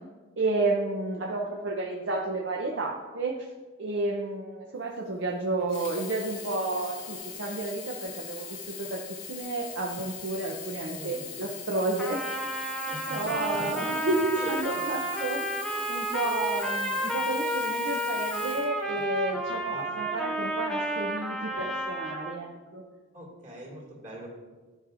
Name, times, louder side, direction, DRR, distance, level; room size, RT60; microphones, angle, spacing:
voice 1, 0.4-3.5 3.8-9.0 9.3-12.2 12.9-15.5 15.9-22.8, right 2 dB, 65° right, -1 dB, 0.7 m, -31 dB
Sink (filling or washing), 5.6-19.4 20.1-20.2, left 7 dB, 70° left, 1.0 m, -41 dB
voice 2, 11.0-11.3 12.9-14.1 14.3-14.5 19.6-19.9 23.1-24.3, right 1 dB, 40° right, -3 dB, 2.2 m, -41 dB
Trumpet, 12.0-22.4, right 1 dB, 5° left, 0.5 m, -31 dB
12.0 x 4.9 x 2.5 m, 1.4 s
head